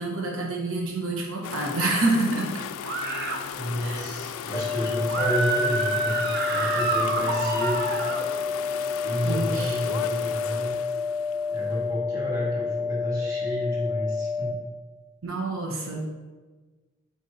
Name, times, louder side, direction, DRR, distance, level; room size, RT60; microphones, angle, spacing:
voice 1, 0.0-2.6 3.8-4.1 9.2-9.8 15.2-16.1, right 2 dB, 80° right, -1 dB, 1.0 m, -27 dB
sound 1, 1.4-11.9, left 8 dB, 85° left, 0.3 m, -36 dB
sound 2, 2.8-3.4 5.1-8.2, right 3 dB, 55° right, 0.7 m, -28 dB
voice 2, 3.5-6.2 6.5-7.9 9.0-10.8 11.5-14.6, equal, 20° right, -7 dB, 1.9 m, -30 dB
sound 3, 4.5-14.5, left 5 dB, 5° left, 0.5 m, -29 dB
6.6 x 5.3 x 2.8 m, 1.3 s
head